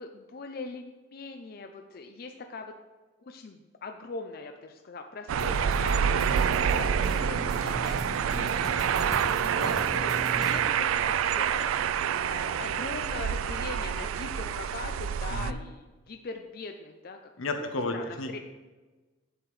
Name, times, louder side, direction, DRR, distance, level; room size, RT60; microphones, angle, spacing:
voice 1, 0.0-2.7 3.2-11.7 12.3-17.2 17.9-18.4, left 3 dB, 45° left, 5 dB, 0.4 m, -41 dB
sound 1, 5.3-15.5, right 8 dB, 90° right, 0.3 m, -27 dB
sound 2, 5.4-10.6, equal, ahead, 0.9 m, -39 dB
voice 2, 17.4-18.4, left 2 dB, 85° left, 6 dB, 1.0 m, -33 dB
8.0 x 7.9 x 3.2 m, 1.3 s
head